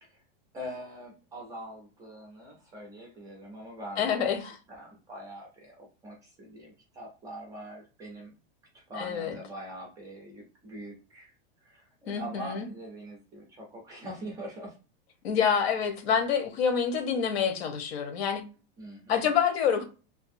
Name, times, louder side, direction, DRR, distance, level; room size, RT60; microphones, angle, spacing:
voice 1, 0.5-4.3 4.7-8.3 8.7-11.3 11.6-14.8 18.8-19.2, right 1 dB, 10° right, 0.3 m, -43 dB
voice 2, 4.0-4.5 9.0-9.4 12.1-12.7 15.2-18.4 19.1-19.8, left 7 dB, 85° left, 1.0 m, -27 dB
2.6 x 2.4 x 2.5 m
supercardioid pair, 165°, 31 cm